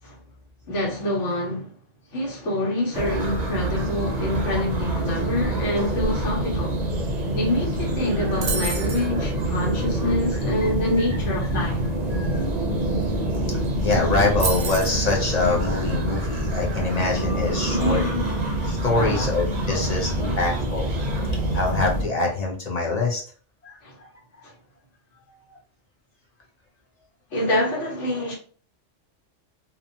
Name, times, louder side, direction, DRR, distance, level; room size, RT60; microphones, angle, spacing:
voice 1, 0.7-1.7 2.1-6.8 7.3-11.9 17.7-18.4 18.9-19.4 19.7-20.4 23.8-23.9 24.4-24.5 27.3-28.3, left 1 dB, 75° left, 1.3 m, -26 dB
sound 1, 2.9-22.0, right 1 dB, 45° right, 0.6 m, -26 dB
sound 2, 8.4-9.1 13.0-13.1 13.3-13.7 14.4-15.0, right 5 dB, 80° right, 0.9 m, -29 dB
voice 2, 12.1-12.4 13.8-18.0 18.7-20.9 21.5-23.2 23.6-23.7 24.0-24.1, left 3 dB, 45° left, 0.6 m, -24 dB
2.7 x 2.2 x 2.6 m
omnidirectional pair, 1.2 m